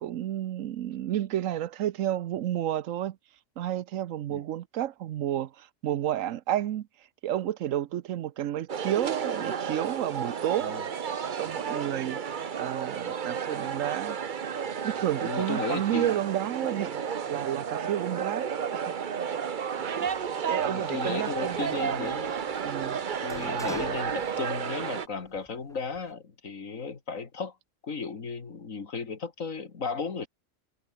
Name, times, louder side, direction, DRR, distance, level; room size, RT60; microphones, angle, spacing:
voice 1, 0.0-3.2 3.6-6.9 7.2-10.8 11.3-12.2 12.5-14.2 14.8-17.0 17.3-18.5 18.7-18.9 19.8-22.2 22.6-23.0, right 12 dB, 85° right, 1.1 m, -31 dB
sound 1, 8.7-25.1, right 7 dB, 45° right, 0.9 m, -32 dB
voice 2, 15.2-16.2 20.5-22.4 23.2-27.6 27.8-30.3, left 5 dB, 90° left, 2.5 m, -35 dB
Sliding door, 20.0-24.9 25.2-26.1, equal, ahead, 5.4 m, -48 dB
omnidirectional pair, 1.3 m